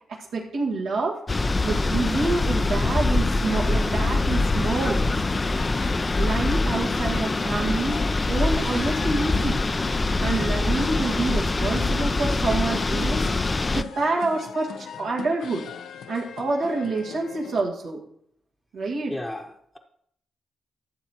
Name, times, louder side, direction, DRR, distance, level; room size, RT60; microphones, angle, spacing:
voice 1, 0.1-1.2 1.6-5.1 6.2-9.6 10.2-13.3 13.7-15.7 16.1-18.0 18.7-19.1, right 3 dB, 90° right, -5 dB, 1.8 m, -27 dB
sound 1, 1.3-13.8, left 2 dB, 30° left, 0.4 m, -24 dB
sound 2, 5.2-17.6, left 6 dB, 80° left, 0.6 m, -40 dB
voice 2, 19.1-19.8, left 1 dB, 10° left, 1 dB, 0.9 m, -34 dB
13.5 x 6.6 x 3.0 m, 0.69 s
cardioid pair, 65°, 0 cm